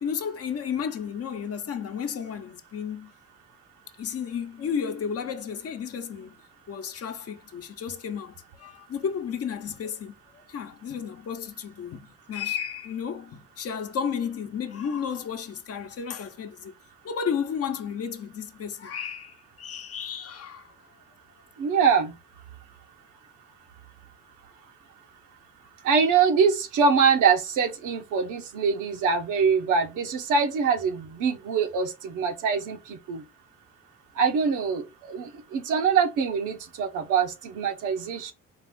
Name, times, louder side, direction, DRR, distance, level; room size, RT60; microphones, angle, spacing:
voice 1, 0.0-3.1 4.0-6.3 6.7-10.1 10.5-16.7 17.0-20.7, left 7 dB, 50° left, 0.8 m, -33 dB
voice 2, 21.6-22.1 25.8-33.2 34.2-38.3, right 6 dB, 90° right, 0.9 m, -24 dB
4.3 x 2.5 x 3.6 m
cardioid pair, 90°, 30 cm